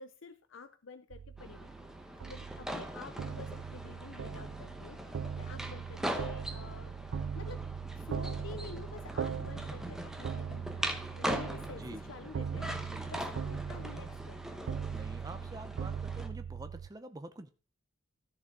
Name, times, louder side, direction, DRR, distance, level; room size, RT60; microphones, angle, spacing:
voice 1, 0.0-1.9 2.3-6.9 7.3-7.6 7.9-13.2 13.5-14.8, left 4 dB, 80° left, 0.6 m, -49 dB
sound 1, 1.1-16.9, right 6 dB, 75° right, 0.3 m, -40 dB
sound 2, 1.4-16.3, equal, 5° right, 0.9 m, -41 dB
voice 2, 14.9-17.5, right 2 dB, 20° right, 0.6 m, -46 dB
13.0 x 6.6 x 3.7 m
head